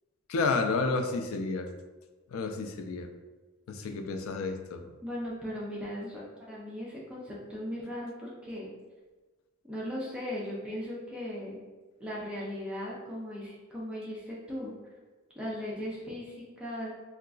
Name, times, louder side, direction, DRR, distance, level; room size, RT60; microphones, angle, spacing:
voice 1, 0.3-1.7 2.3-3.1 3.7-4.9, left 3 dB, 80° left, 6 dB, 0.4 m, -30 dB
voice 2, 5.0-6.2 6.5-8.7 9.7-11.6 12.0-14.7 15.4-16.9, equal, 5° right, -6 dB, 0.4 m, -37 dB
3.7 x 2.3 x 2.3 m, 1.3 s
head